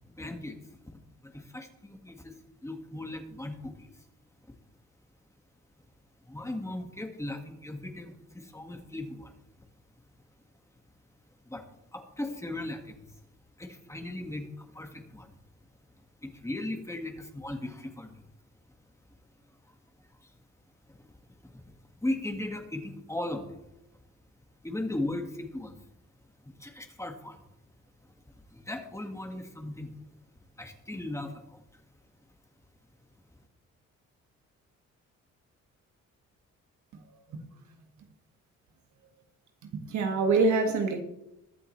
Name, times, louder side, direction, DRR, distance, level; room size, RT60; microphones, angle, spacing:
voice 1, 0.2-0.6 1.2-2.3 2.6-3.9 6.3-9.3 11.5-11.6 11.9-13.1 13.6-15.4 16.2-18.3 20.2-20.3 20.9-21.0 21.4-21.6 22.0-23.6 24.6-25.7 26.5-27.4 28.5-29.9 30.6-31.6, left 1 dB, 10° left, 1.8 m, -37 dB
voice 2, 39.7-41.0, right 3 dB, 70° right, 1.8 m, -25 dB
22.0 x 7.9 x 3.2 m
cardioid pair, 90°, 30 cm